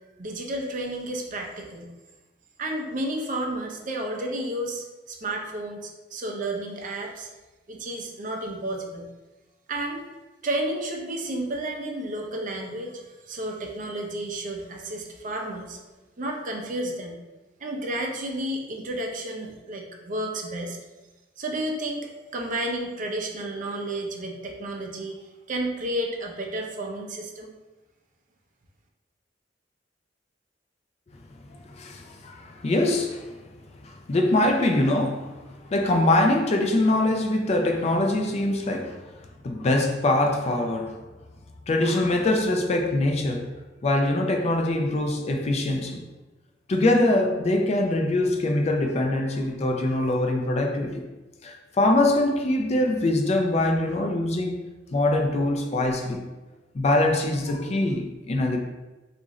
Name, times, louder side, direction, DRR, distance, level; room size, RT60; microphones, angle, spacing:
voice 1, 0.2-1.9 2.6-7.3 7.7-9.1 9.7-10.0 10.4-15.8 16.2-17.2 17.6-20.8 21.4-27.5, right 1 dB, 45° right, 0.5 m, -31 dB
voice 2, 31.8-33.3 33.8-39.0 39.4-40.9 41.7-43.5 43.8-46.0 46.7-51.1 51.4-54.6 54.9-56.2 56.7-58.6, left 1 dB, 35° left, 0.4 m, -23 dB
3.0 x 2.5 x 3.7 m
head